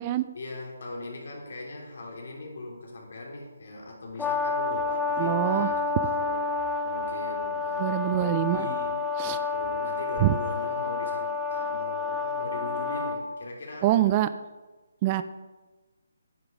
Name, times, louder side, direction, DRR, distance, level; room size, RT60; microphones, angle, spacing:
voice 1, 0.3-6.4 6.8-14.1, left 2 dB, 60° left, -1 dB, 3.4 m, -40 dB
Brass instrument, 4.2-13.2, left 3 dB, 5° left, 0.7 m, -29 dB
voice 2, 5.2-5.7 6.0-6.1 7.8-8.7 9.2-9.4 10.2-10.4 13.8-14.3 15.0-15.2, right 14 dB, 25° right, 12 dB, 0.4 m, -24 dB
9.6 x 8.9 x 5.3 m, 1.2 s
hypercardioid pair, 160°, 0 cm